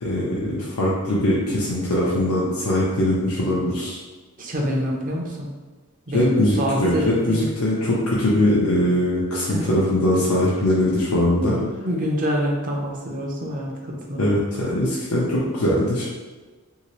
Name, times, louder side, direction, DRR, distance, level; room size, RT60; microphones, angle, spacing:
voice 1, 0.0-4.0 6.1-11.6 14.2-16.1, left 1 dB, 80° left, -6 dB, 0.6 m, -21 dB
voice 2, 4.4-5.5 6.1-7.5 9.5-9.7 11.4-14.3, equal, 40° right, -1 dB, 0.6 m, -26 dB
2.8 x 2.8 x 3.0 m, 1.3 s
head